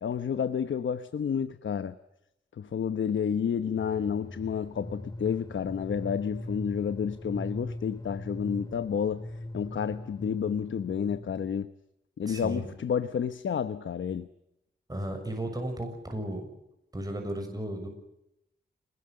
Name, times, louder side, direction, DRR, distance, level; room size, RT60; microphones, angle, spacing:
voice 1, 0.0-2.0 2.6-9.2 9.5-11.7 12.2-14.3, left 7 dB, 85° left, 1.0 m, -30 dB
sound 1, 3.7-11.6, left 1 dB, 20° left, 2.2 m, -41 dB
voice 2, 12.2-12.6 14.9-16.4 16.9-17.9, right 1 dB, 20° right, 6.6 m, -34 dB
27.5 x 21.0 x 7.7 m
wide cardioid pair, 75°, 19 cm